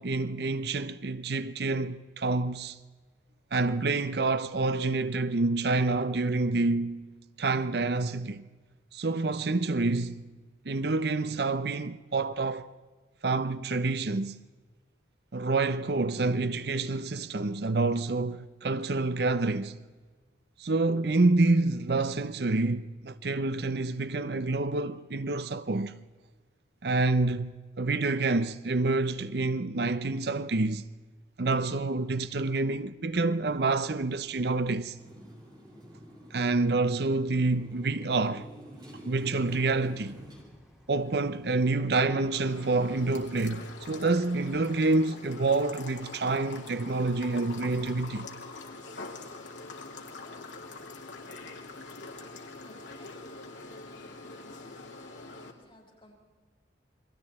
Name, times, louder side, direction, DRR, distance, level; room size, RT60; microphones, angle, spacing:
voice 1, 0.0-2.8 3.5-7.1 7.4-8.4 8.9-10.3 10.6-12.7 13.2-14.4 15.3-19.8 20.6-26.0 26.8-30.9 31.4-35.0 36.3-38.5 39.0-40.2 40.9-48.3, right 3 dB, 60° right, 0.7 m, -28 dB
Motorcycle, 35.0-40.4, equal, 25° right, 5.7 m, -47 dB
Bird vocalization bird call bird song, 39.6-44.8, equal, 5° right, 3.9 m, -59 dB
sound 1, 42.3-55.5, left 3 dB, 80° left, 2.6 m, -44 dB
voice 2, 52.6-54.4 54.9-56.2, left 1 dB, 25° left, 6.3 m, -59 dB
29.5 x 23.0 x 4.3 m
head